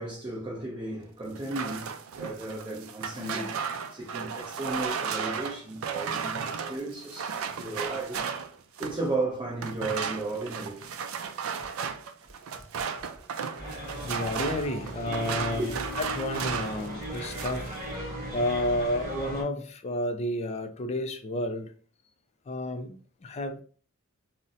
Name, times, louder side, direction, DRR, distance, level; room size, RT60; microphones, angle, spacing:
voice 1, 0.0-8.2 8.8-10.9 12.5-12.6 13.6-14.0 15.6-15.7, right 2 dB, 20° right, 0.6 m, -35 dB
sound 1, 1.4-9.1 9.6-16.9 17.1-17.7, right 6 dB, 65° right, 0.3 m, -34 dB
Sigh, 3.0-3.6, left 1 dB, 5° left, 1.5 m, -45 dB
sound 2, 13.6-19.4, equal, 40° right, 1.2 m, -37 dB
voice 2, 14.0-17.7 18.3-21.7 22.5-23.6, left 1 dB, 30° left, 0.3 m, -31 dB
3.9 x 2.1 x 2.5 m
head